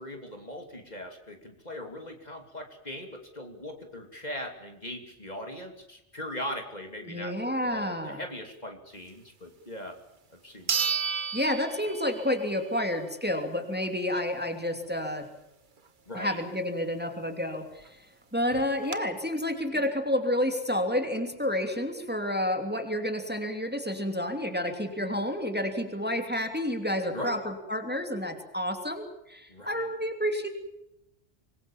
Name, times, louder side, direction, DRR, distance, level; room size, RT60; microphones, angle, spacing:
voice 1, 0.0-10.0 10.3-10.9 16.1-16.4 27.1-27.4 29.5-29.8, left 1 dB, 35° left, 4 dB, 3.1 m, -40 dB
voice 2, 7.0-8.2 11.3-15.2 16.1-18.0 18.3-30.5, left 1 dB, 10° right, 5 dB, 2.9 m, -30 dB
sound 1, 9.9-10.0 10.7-12.4 12.8-12.9 17.5-17.6 17.9-18.0 18.5-19.0, right 6 dB, 45° right, 1.3 m, -31 dB
26.0 x 21.0 x 7.3 m, 0.88 s
omnidirectional pair, 1.2 m